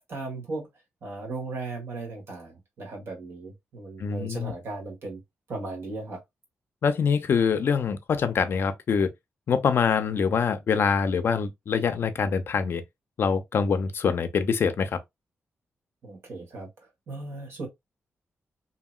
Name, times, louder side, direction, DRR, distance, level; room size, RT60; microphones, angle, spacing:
voice 1, 0.1-0.7 1.0-5.2 5.5-6.2 16.0-16.7 17.1-17.7, right 3 dB, 60° right, 1.5 m, -36 dB
voice 2, 4.0-4.5 6.8-9.1 9.5-12.8 13.2-15.0, left 6 dB, 50° left, 0.5 m, -24 dB
2.8 x 2.8 x 2.3 m
wide cardioid pair, 160°, 5 cm